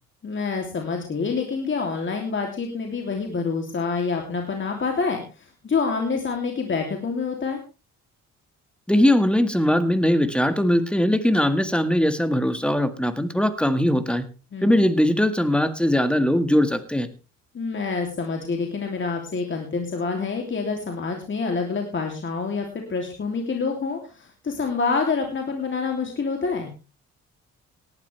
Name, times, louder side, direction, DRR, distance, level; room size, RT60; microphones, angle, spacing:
voice 1, 0.2-7.6 14.5-14.8 17.5-26.7, left 4 dB, 40° left, 2 dB, 3.0 m, -27 dB
voice 2, 8.9-14.2 14.6-17.1, left 1 dB, 5° left, 10 dB, 1.8 m, -20 dB
18.0 x 12.0 x 3.4 m, 0.32 s
cardioid pair, 90°, 30 cm